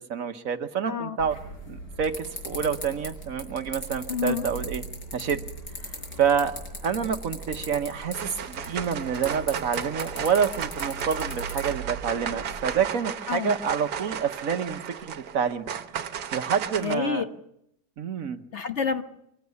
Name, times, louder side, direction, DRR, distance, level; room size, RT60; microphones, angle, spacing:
voice 1, 0.0-1.4 1.7-4.8 5.1-5.4 6.2-6.6 6.8-15.6 16.3-17.3 18.0-18.4, right 7 dB, 60° right, 9 dB, 1.4 m, -28 dB
voice 2, 0.9-1.2 4.1-4.5 13.3-13.5 16.8-17.3 18.5-19.0, left 6 dB, 50° left, 8 dB, 1.3 m, -28 dB
sound 1, 1.2-12.7, equal, 65° left, 5.9 m, -38 dB
sound 2, 7.4-7.8 8.1-16.9, right 8 dB, 80° right, 1.6 m, -34 dB
24.0 x 16.0 x 6.9 m, 0.77 s
omnidirectional pair, 1.7 m